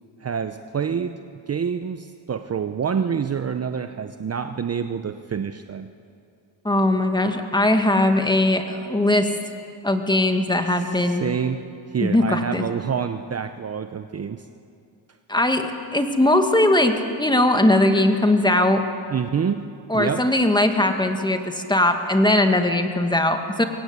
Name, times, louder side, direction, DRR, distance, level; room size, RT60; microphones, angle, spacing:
voice 1, 0.2-5.9 11.1-14.5 19.1-19.7 19.9-20.2, right 7 dB, 30° right, 9 dB, 0.8 m, -27 dB
voice 2, 6.6-9.3 9.8-11.2 12.0-12.6 15.3-18.8 19.9-23.6, left 1 dB, 10° left, 5 dB, 2.0 m, -20 dB
23.5 x 18.0 x 8.2 m, 2.5 s
cardioid pair, 90°, 47 cm